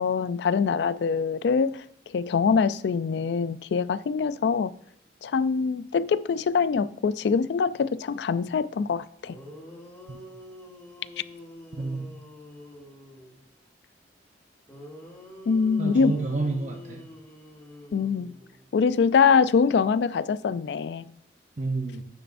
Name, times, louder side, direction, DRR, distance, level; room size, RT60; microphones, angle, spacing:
voice 1, 0.0-4.7 5.2-9.4 15.5-16.1 17.9-18.3 18.7-21.1, left 5 dB, 70° left, 0.3 m, -24 dB
sound 1, 9.3-13.4 14.7-18.7, left 1 dB, 15° left, 3.2 m, -46 dB
voice 2, 11.7-12.1 15.8-17.1 21.6-22.0, right 3 dB, 40° right, 0.7 m, -30 dB
10.0 x 6.7 x 2.6 m
head